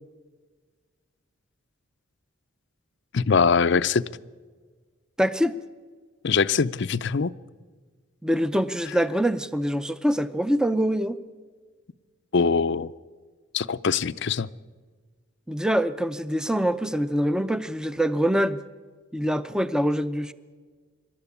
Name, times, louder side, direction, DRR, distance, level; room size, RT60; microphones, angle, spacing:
voice 1, 3.1-4.0 6.2-7.3 12.3-12.9 13.5-14.5, left 5 dB, 55° left, 15 dB, 0.5 m, -22 dB
voice 2, 5.2-5.6 8.2-11.2 15.5-18.6 19.1-20.3, equal, 5° right, 13 dB, 0.6 m, -24 dB
25.5 x 13.0 x 8.5 m, 1.5 s
head